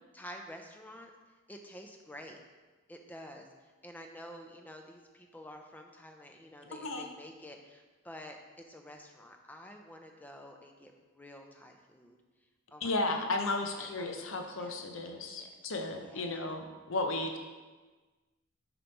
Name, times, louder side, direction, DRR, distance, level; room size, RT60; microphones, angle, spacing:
voice 1, 0.1-1.1 1.5-2.4 2.9-12.2 12.7-13.2 13.8-14.8 15.4-15.6 16.0-16.4, equal, 10° left, 3 dB, 0.4 m, -50 dB
voice 2, 6.7-7.0 12.8-17.4, left 2 dB, 75° left, 4 dB, 0.7 m, -34 dB
6.7 x 3.0 x 5.2 m, 1.3 s
head